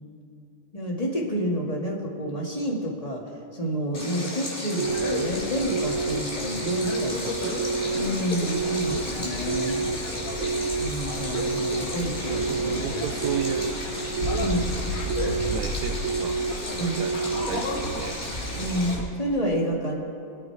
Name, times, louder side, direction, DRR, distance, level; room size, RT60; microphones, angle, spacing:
voice 1, 0.7-7.3 7.9-9.8 10.8-12.8 14.4-14.7 16.8-17.0 18.6-20.0, equal, 25° left, -4 dB, 0.8 m, -29 dB
Stream, 3.9-18.9, left 1 dB, 5° left, 3.4 m, -36 dB
sound 1, 4.8-19.0, left 1 dB, 55° left, 0.9 m, -33 dB
sound 2, 4.8-5.3 5.7-6.2 6.7-7.1 7.6-8.1 8.5-9.0 9.5-10.0 10.4-10.9 11.3-11.8 12.3-12.8 13.2-13.7 14.2-14.6 15.1-15.6 16.0-16.5 17.0-17.5, right 4 dB, 70° right, 2.3 m, -28 dB
voice 2, 7.2-8.0 11.8-11.9 12.5-13.8 15.5-17.2 17.5-18.2, right 10 dB, 85° right, 6 dB, 1.7 m, -35 dB
26.5 x 9.0 x 4.7 m, 2.6 s
omnidirectional pair, 3.9 m